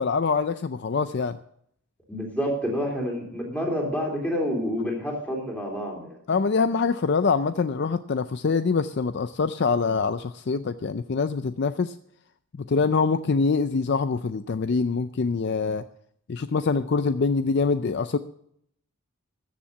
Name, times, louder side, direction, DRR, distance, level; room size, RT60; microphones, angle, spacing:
voice 1, 0.0-1.4 6.3-11.9 12.6-15.8 16.3-18.2, left 4 dB, 50° left, 11 dB, 0.4 m, -24 dB
voice 2, 2.1-6.1, equal, 5° left, -1 dB, 3.4 m, -28 dB
13.5 x 7.3 x 6.9 m, 0.70 s
head